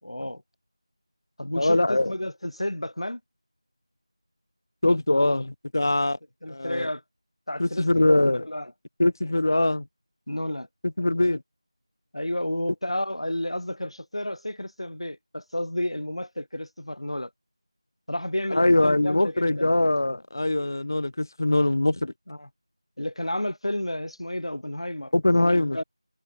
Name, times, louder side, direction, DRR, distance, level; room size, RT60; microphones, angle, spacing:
voice 1, 0.0-0.4 1.4-3.2 6.4-7.0 7.5-8.7 10.3-10.7 12.1-17.3 18.1-19.7 22.3-22.5 23.0-25.8, left 1 dB, 75° left, 2.4 m, -31 dB
voice 2, 1.6-2.1 4.8-6.2 6.5-6.9 7.6-8.5 9.0-9.8 11.0-11.4 18.5-22.1 25.1-25.8, left 1 dB, 40° left, 0.4 m, -22 dB
figure-of-eight pair, 175°, 3 cm